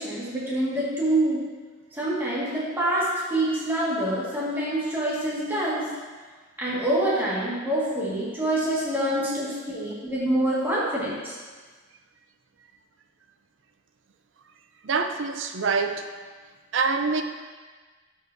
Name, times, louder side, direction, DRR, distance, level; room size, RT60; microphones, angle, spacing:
voice 1, 0.0-1.4 1.9-5.9 6.6-11.3, right 1 dB, 10° right, -8 dB, 1.8 m, -26 dB
voice 2, 14.8-16.1 16.7-17.2, right 4 dB, 65° right, 7 dB, 0.5 m, -25 dB
12.5 x 4.8 x 2.7 m, 1.4 s
head